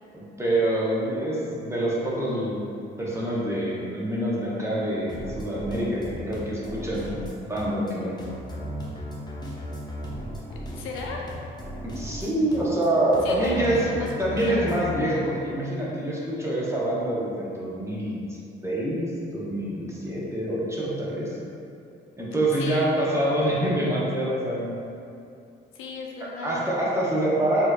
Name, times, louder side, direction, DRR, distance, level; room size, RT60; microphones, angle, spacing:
voice 1, 0.1-2.7 3.0-7.1 7.5-8.2 11.8-18.3 18.6-21.4 22.2-24.8 26.4-27.7, right 1 dB, 15° right, -6 dB, 0.8 m, -26 dB
sound 1, 5.1-15.0, equal, 20° left, 0.6 m, -36 dB
voice 2, 10.5-11.2 13.2-14.6 22.6-22.9 25.7-26.7, left 4 dB, 90° left, -1 dB, 0.5 m, -36 dB
4.3 x 2.9 x 2.2 m, 2.5 s
cardioid pair, 90°, 20 cm